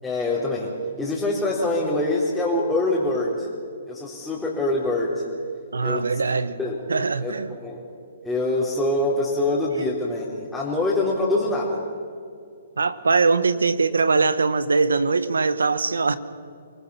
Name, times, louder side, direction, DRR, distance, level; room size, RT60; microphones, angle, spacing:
voice 1, 0.0-3.5 3.9-5.2 5.8-6.2 6.6-6.8 7.2-7.8 8.2-11.8, left 2 dB, 5° left, 4.1 m, -24 dB
voice 2, 5.7-6.6 6.9-7.6 12.8-16.2, right 4 dB, 85° right, 1.1 m, -21 dB
27.5 x 19.5 x 5.8 m
hypercardioid pair, 130°, 0 cm